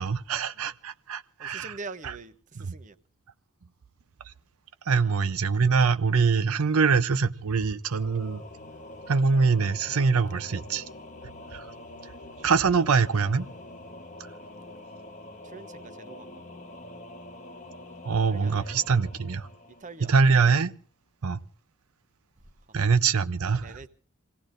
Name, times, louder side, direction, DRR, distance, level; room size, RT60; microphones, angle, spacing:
voice 1, 0.0-1.7 4.9-8.4 9.1-10.8 11.5-11.6 12.4-13.5 18.0-19.5 20.0-20.7 21.2-21.4 22.7-23.9, right 5 dB, 80° right, 0.6 m, -24 dB
voice 2, 1.4-3.0 5.0-5.3 10.5-10.8 15.4-16.3 18.3-18.7 19.8-20.1 23.6-23.9, right 4 dB, 35° right, 0.8 m, -44 dB
Singing / Musical instrument, 7.9-20.5, left 1 dB, 35° left, 1.1 m, -45 dB
27.5 x 17.5 x 2.6 m
head